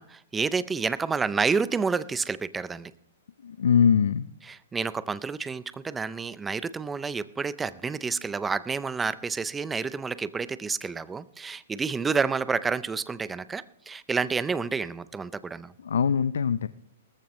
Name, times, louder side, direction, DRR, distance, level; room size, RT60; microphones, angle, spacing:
voice 1, 0.0-2.9 4.4-15.7, right 5 dB, 10° right, 16 dB, 0.5 m, -29 dB
voice 2, 3.4-4.3 15.8-16.7, left 7 dB, 85° left, 14 dB, 0.5 m, -22 dB
19.0 x 14.0 x 3.1 m, 0.72 s
hypercardioid pair, 145°, 0 cm